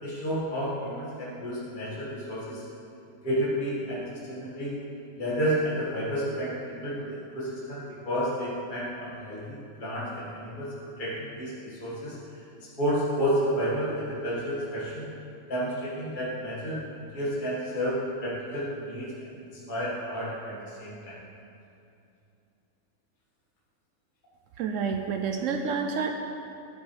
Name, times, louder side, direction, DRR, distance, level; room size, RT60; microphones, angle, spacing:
voice 1, 0.0-2.6 3.2-4.8 5.2-12.2 12.8-15.1 15.5-17.9 18.2-19.4 19.7-21.2, equal, 30° left, -8 dB, 1.9 m, -31 dB
voice 2, 24.6-26.1, right 5 dB, 85° right, 4 dB, 0.6 m, -29 dB
12.0 x 7.9 x 3.3 m, 2.6 s
omnidirectional pair, 1.9 m